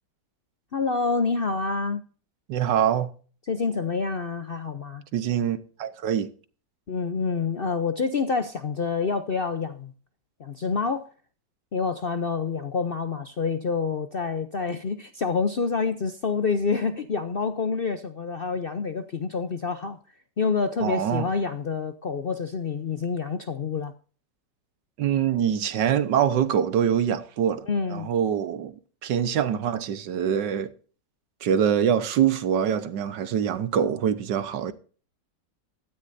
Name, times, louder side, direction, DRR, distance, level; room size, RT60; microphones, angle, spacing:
voice 1, 0.7-2.0 3.5-5.0 6.9-9.9 10.4-11.1 11.7-20.0 20.4-23.9 27.7-28.1, left 5 dB, 55° left, 0.6 m, -27 dB
voice 2, 2.5-3.1 5.1-6.3 20.8-21.3 25.0-28.7 29.0-30.7 31.4-34.7, right 9 dB, 85° right, 1.7 m, -24 dB
16.5 x 13.0 x 2.7 m
omnidirectional pair, 1.9 m